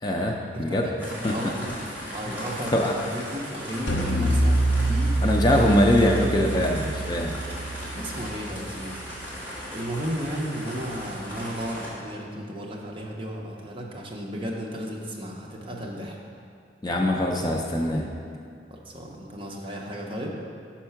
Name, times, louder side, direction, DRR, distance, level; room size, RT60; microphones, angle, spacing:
voice 1, 0.0-0.9 1.2-1.4 2.7-2.9 5.2-7.4 16.8-18.1, left 1 dB, 25° left, 1 dB, 0.4 m, -22 dB
voice 2, 0.5-1.7 2.1-2.7 3.0-5.4 7.9-9.0 9.7-16.2 18.7-20.3, equal, 30° right, -1 dB, 0.7 m, -34 dB
sound 1, 1.0-11.9, equal, 10° right, 1.6 m, -37 dB
sound 2, 3.9-9.3, right 1 dB, 70° left, 0.8 m, -26 dB
5.5 x 4.4 x 5.7 m, 2.3 s
head